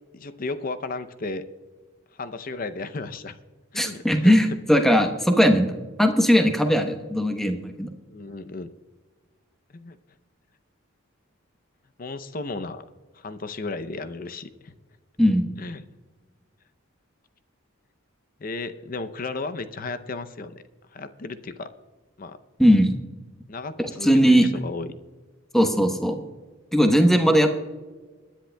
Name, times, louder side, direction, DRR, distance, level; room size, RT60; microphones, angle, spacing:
voice 1, 0.1-1.4 2.1-3.4 3.7-4.3 8.1-8.7 9.7-10.0 12.0-12.8 13.1-14.7 15.6-15.8 18.4-20.6 20.9-21.7 22.2-22.4 23.5-25.0, left 3 dB, 45° left, 11 dB, 0.6 m, -34 dB
voice 2, 3.8-5.7 6.0-7.9 15.2-15.5 22.6-22.9 23.8-24.5 25.5-26.2 26.7-27.5, equal, ahead, 5 dB, 0.9 m, -19 dB
24.0 x 10.5 x 2.2 m, 1.4 s
head